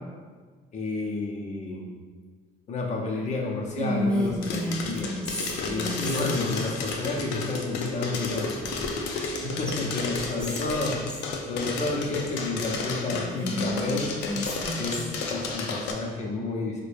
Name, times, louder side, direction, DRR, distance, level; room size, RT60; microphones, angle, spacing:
voice 1, 0.7-1.8 2.7-5.1 5.7-8.6 9.4-11.0 11.4-14.1 14.8-16.8, left 3 dB, 45° left, -1 dB, 0.6 m, -30 dB
Whispering, 3.8-6.6 8.6-9.4 9.7-9.8 10.1-11.3 13.1-15.3, left 1 dB, 5° left, 0.5 m, -32 dB
sound 1, 4.4-15.9, left 4 dB, 90° left, 0.4 m, -32 dB
3.4 x 2.1 x 3.3 m, 1.5 s
cardioid pair, 110°, 17 cm